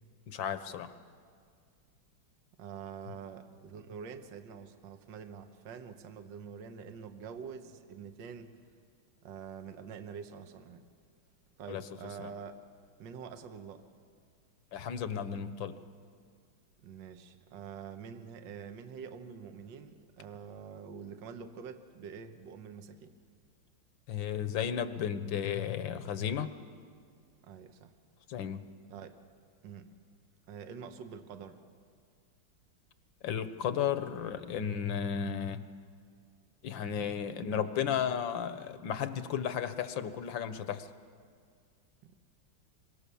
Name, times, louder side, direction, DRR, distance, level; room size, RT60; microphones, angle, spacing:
voice 1, 0.3-0.9 11.7-11.8 12.2-12.3 14.7-15.7 24.1-26.5 28.3-28.7 33.2-35.7 36.6-40.9, left 8 dB, 70° left, 11 dB, 1.6 m, -34 dB
voice 2, 2.6-8.6 9.2-10.8 11.6-12.6 13.0-13.8 16.8-23.1 27.4-27.9 28.9-29.2 29.6-29.9 30.5-31.6 42.0-42.1, right 6 dB, 65° right, 8 dB, 1.7 m, -46 dB
25.5 x 23.0 x 7.0 m, 2.1 s
omnidirectional pair, 2.3 m